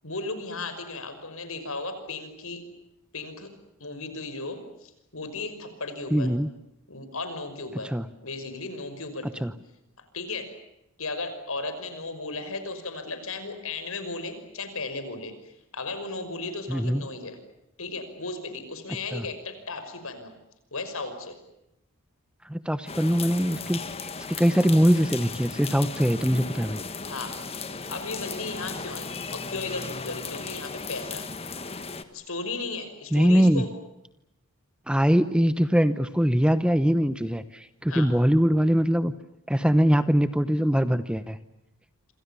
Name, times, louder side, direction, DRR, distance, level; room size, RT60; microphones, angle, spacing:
voice 1, 0.0-2.6 3.1-3.5 3.8-6.3 6.9-7.9 8.2-9.4 10.1-10.5 11.0-17.4 17.8-20.3 20.7-21.4 27.1-27.4 27.9-31.3 32.1-33.7 37.9-38.1, left 3 dB, 70° left, 9 dB, 5.7 m, -35 dB
voice 2, 6.1-6.5 7.8-8.0 9.4-9.5 16.7-17.0 19.1-19.2 22.5-26.8 33.1-33.6 34.9-39.1 39.5-41.4, equal, 5° right, 12 dB, 0.9 m, -22 dB
sound 1, 22.9-32.0, left 4 dB, 25° left, 1.5 m, -36 dB
27.5 x 27.0 x 7.1 m, 0.86 s
head